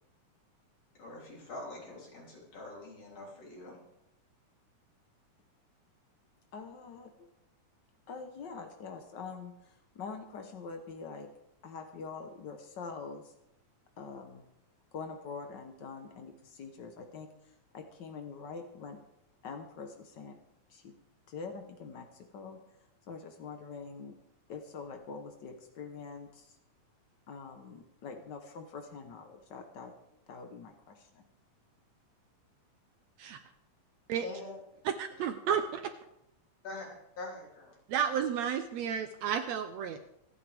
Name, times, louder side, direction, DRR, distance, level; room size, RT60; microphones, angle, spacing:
voice 1, 1.0-3.8 34.2-34.9 36.6-36.9 37.2-37.8, left 2 dB, 50° left, -3 dB, 4.2 m, -44 dB
voice 2, 6.5-7.1 8.1-11.3 11.6-13.3 14.0-14.4 14.9-17.3 17.7-19.0 19.4-20.3 20.7-20.9 21.3-22.6 23.1-24.2 24.5-26.5 27.3-29.9 30.3-31.2, left 5 dB, 85° left, 5 dB, 0.9 m, -44 dB
voice 3, 34.8-35.8 37.9-40.0, right 8 dB, 75° right, 8 dB, 1.7 m, -32 dB
26.0 x 9.1 x 3.5 m, 0.84 s
omnidirectional pair, 3.6 m